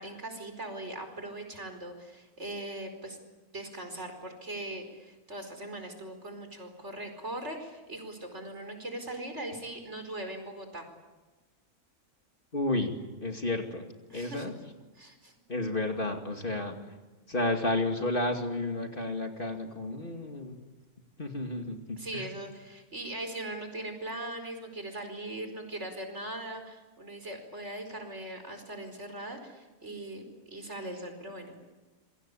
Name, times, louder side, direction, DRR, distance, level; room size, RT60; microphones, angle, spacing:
voice 1, 0.0-3.2 3.5-10.9 14.1-14.5 15.0-15.3 22.0-31.6, right 1 dB, 50° right, 6 dB, 5.1 m, -40 dB
voice 2, 12.5-12.9 13.2-13.9 14.1-14.6 15.5-17.0 17.3-20.6 21.2-22.3, left 2 dB, 35° left, 4 dB, 2.6 m, -31 dB
27.0 x 24.0 x 8.6 m, 1.2 s
omnidirectional pair, 1.5 m